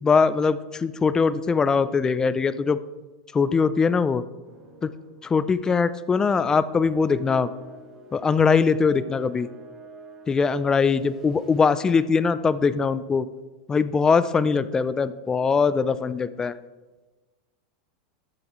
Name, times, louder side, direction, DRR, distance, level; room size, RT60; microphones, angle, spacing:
voice 1, 0.0-2.8 3.3-4.2 4.8-4.9 5.2-7.5 8.1-9.5 10.3-13.3 13.7-16.6, left 5 dB, 15° left, 15 dB, 0.4 m, -21 dB
sound 1, 4.4-5.2 5.5-5.7 6.5-11.9, right 2 dB, 10° right, 3.0 m, -45 dB
12.5 x 7.9 x 3.1 m, 1.2 s
supercardioid pair, 125°, 4 cm